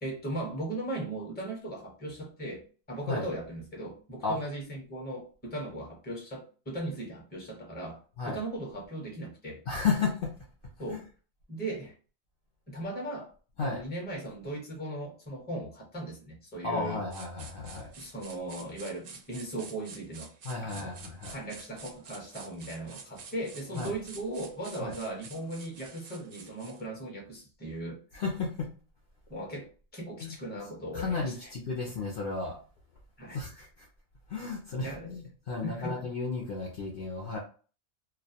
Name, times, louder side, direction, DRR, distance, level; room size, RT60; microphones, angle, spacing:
voice 1, 0.0-9.6 10.8-11.0 11.5-11.9 12.7-13.3 13.6-17.0 18.0-20.3 20.6-21.0 21.3-28.0 29.3-31.3 33.2-33.4 34.8-35.2 35.6-36.0, right 1 dB, 10° left, 0 dB, 0.6 m, -38 dB
voice 2, 9.7-10.3 10.9-11.0 13.6-13.8 16.6-17.9 20.4-21.3 23.8-23.9 24.8-25.0 28.1-28.7 30.2-30.3 30.9-32.6 33.3-33.9 34.3-37.4, left 4 dB, 60° left, -1 dB, 0.6 m, -33 dB
sound 1, 17.1-26.8, right 5 dB, 60° right, 0.6 m, -49 dB
2.4 x 2.1 x 2.7 m, 0.39 s
omnidirectional pair, 1.2 m